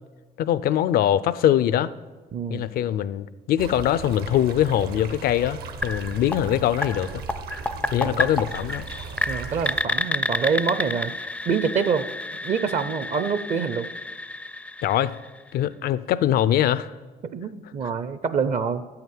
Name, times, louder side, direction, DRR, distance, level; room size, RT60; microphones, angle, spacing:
voice 1, 0.4-1.9 2.5-7.2 7.9-8.9 14.8-15.2 15.5-16.9, left 11 dB, 65° left, 16 dB, 0.5 m, -22 dB
voice 2, 2.3-2.7 8.0-8.3 9.3-12.1 12.4-13.9 17.3-18.8, right 6 dB, 45° right, 12 dB, 0.6 m, -26 dB
sound 1, 3.6-9.8, right 5 dB, 65° right, 0.9 m, -37 dB
sound 2, 5.8-15.6, left 2 dB, 5° left, 0.4 m, -30 dB
12.0 x 5.8 x 9.2 m, 1.3 s
cardioid pair, 110°, 17 cm